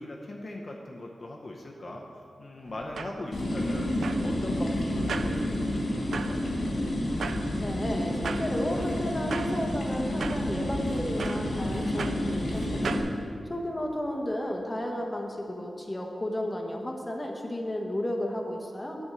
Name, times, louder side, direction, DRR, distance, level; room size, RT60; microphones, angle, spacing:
voice 1, 0.0-2.0 2.4-6.7, left 1 dB, 40° left, -1 dB, 0.7 m, -40 dB
sound 1, 2.7-13.1, right 5 dB, 90° right, 0.4 m, -40 dB
sound 2, 3.3-13.0, left 1 dB, 90° left, 1.9 m, -30 dB
voice 2, 7.6-13.0 13.5-19.0, left 1 dB, 15° left, 1 dB, 0.9 m, -33 dB
9.9 x 4.3 x 7.6 m, 2.5 s
wide cardioid pair, 145°, 0 cm